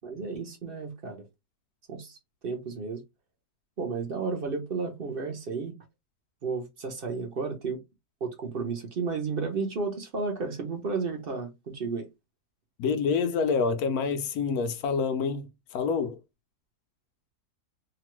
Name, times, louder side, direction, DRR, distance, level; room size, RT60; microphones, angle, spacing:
voice 1, 0.0-1.2 1.9-2.2 2.4-3.0 3.8-5.7 6.4-7.8 8.2-12.1, right 4 dB, 50° right, 0.7 m, -32 dB
voice 2, 12.8-16.2, left 5 dB, 70° left, 1.0 m, -27 dB
2.9 x 2.3 x 2.9 m
omnidirectional pair, 1.8 m